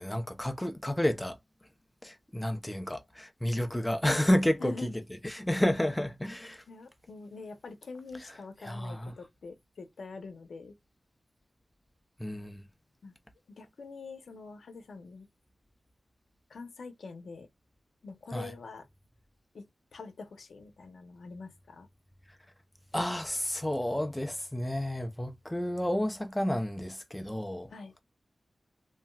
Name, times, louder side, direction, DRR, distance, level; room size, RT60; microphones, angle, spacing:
voice 1, 0.0-1.4 2.0-6.6 8.6-9.1 12.2-12.7 18.3-18.5 22.9-27.7, left 1 dB, 10° left, 0.5 m, -31 dB
voice 2, 4.6-4.9 6.7-10.8 13.0-13.1 13.6-15.3 16.5-17.5 18.0-18.8 19.5-19.6 19.9-21.9 27.7-27.9, left 4 dB, 80° left, 0.7 m, -45 dB
3.1 x 2.8 x 2.2 m
wide cardioid pair, 85°, 0 cm